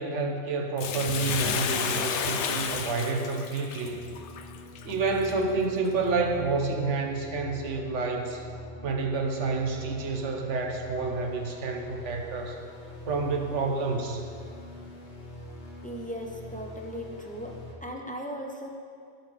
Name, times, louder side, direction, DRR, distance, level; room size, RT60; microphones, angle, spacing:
voice 1, 0.0-4.0 4.8-8.4 8.8-12.6 13.1-14.2, right 4 dB, 70° right, 3 dB, 1.2 m, -29 dB
Bathtub (filling or washing), 0.8-5.3 5.9-6.0, left 7 dB, 70° left, 0.9 m, -31 dB
sound 1, 3.6-17.7, left 1 dB, 40° left, 1.4 m, -44 dB
voice 2, 15.8-17.5 17.8-18.7, equal, 10° left, 1 dB, 0.5 m, -37 dB
15.5 x 5.6 x 3.3 m, 2.4 s
omnidirectional pair, 1.3 m